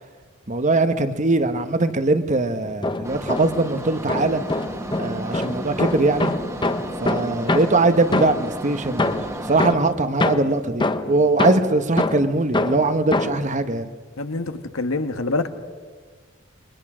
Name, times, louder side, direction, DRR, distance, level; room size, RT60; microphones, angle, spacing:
voice 1, 0.5-4.4 5.0-6.3 7.0-13.9, right 2 dB, 35° right, 10 dB, 1.2 m, -21 dB
sound 1, 2.6-3.7 4.1-8.6 9.0-13.5, left 2 dB, 25° left, 0.8 m, -25 dB
sound 2, 3.0-9.7, right 1 dB, 15° right, 1.7 m, -33 dB
voice 2, 14.2-15.5, left 3 dB, 80° left, 9 dB, 1.4 m, -25 dB
28.5 x 23.0 x 6.2 m, 1.5 s
head